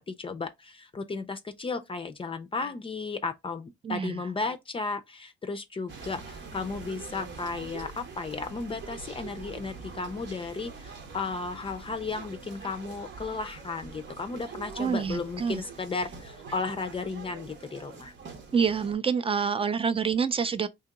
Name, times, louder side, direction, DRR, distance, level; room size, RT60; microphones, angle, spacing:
voice 1, 0.0-18.1, left 4 dB, 25° left, 0.5 m, -34 dB
voice 2, 3.8-4.2 14.8-15.6 18.5-20.7, right 6 dB, 30° right, 0.5 m, -27 dB
sound 1, 5.9-18.9, right 5 dB, 65° right, 1.0 m, -44 dB
2.9 x 2.8 x 3.5 m
cardioid pair, 90°, 20 cm